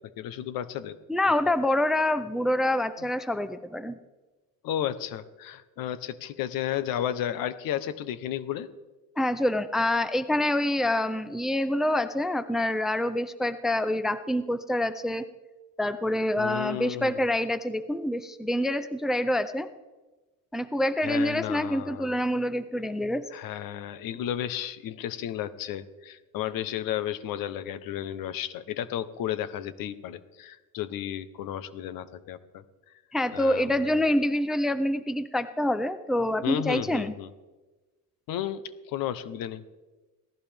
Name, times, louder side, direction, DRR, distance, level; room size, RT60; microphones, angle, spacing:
voice 1, 0.2-1.0 3.0-3.1 4.6-8.7 16.4-17.2 21.0-22.2 23.3-32.6 33.3-33.9 36.4-37.3 38.3-39.6, left 11 dB, 65° left, 14 dB, 1.0 m, -33 dB
voice 2, 1.1-4.0 9.2-15.2 15.8-19.7 20.5-23.2 33.1-37.1, left 1 dB, ahead, 12 dB, 0.5 m, -26 dB
18.0 x 14.5 x 3.5 m, 1.2 s
cardioid pair, 120°, 37 cm